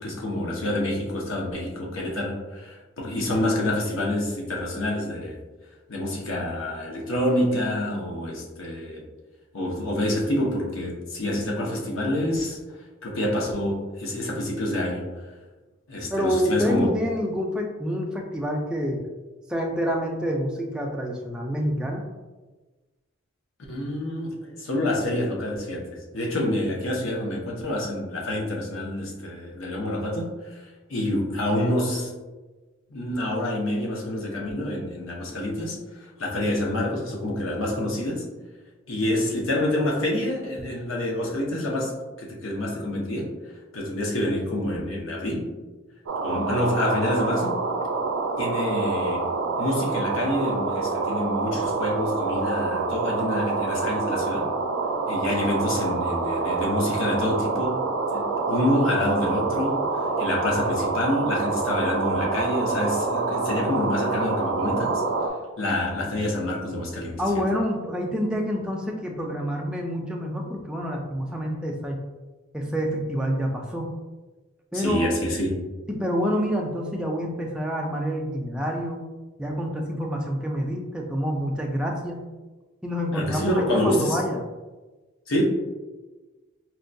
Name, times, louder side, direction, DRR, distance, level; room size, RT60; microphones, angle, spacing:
voice 1, 0.0-5.4 5.9-9.0 9.5-12.6 13.0-15.1 15.9-16.9 23.7-25.8 26.1-30.6 30.9-32.1 32.9-35.8 36.2-38.2 38.9-43.3 43.7-45.5 46.2-47.6 48.4-49.3 49.6-54.5 55.1-57.9 58.1-59.9 60.2-65.0 65.6-67.4 74.7-75.6 83.1-84.2 85.3-85.4, left 1 dB, 75° left, -1 dB, 0.7 m, -27 dB
voice 2, 16.1-19.0 19.5-22.0 67.2-72.0 72.5-73.9 74.7-75.2 75.9-79.0 79.4-82.2 82.8-84.4, equal, 5° right, 0 dB, 0.3 m, -27 dB
sound 1, 46.1-65.3, right 3 dB, 90° right, 0.4 m, -26 dB
4.4 x 2.2 x 2.6 m, 1.2 s
head